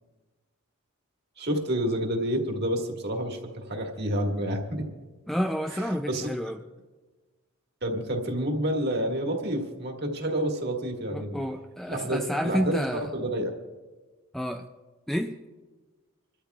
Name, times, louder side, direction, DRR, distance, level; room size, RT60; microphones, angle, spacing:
voice 1, 1.4-4.9 5.7-6.3 7.8-11.4 11.9-13.5, right 1 dB, 50° right, 2 dB, 1.8 m, -29 dB
voice 2, 5.3-6.7 11.1-13.1 14.3-14.7 15.1-15.4, equal, ahead, 4 dB, 0.4 m, -30 dB
27.0 x 13.5 x 2.4 m, 1.3 s
head